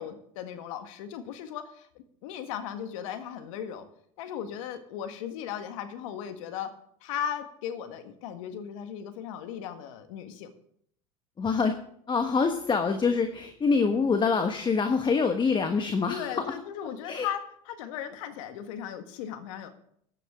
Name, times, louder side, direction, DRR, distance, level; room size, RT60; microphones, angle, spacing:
voice 1, 0.0-1.9 2.2-3.8 4.2-6.7 7.0-10.5 16.1-19.7, left 9 dB, 75° left, 8 dB, 1.6 m, -37 dB
voice 2, 11.4-11.7 12.1-16.5 17.0-17.2, left 5 dB, 25° left, 7 dB, 1.3 m, -25 dB
15.0 x 10.5 x 3.7 m, 0.68 s
hypercardioid pair, 85°, 17 cm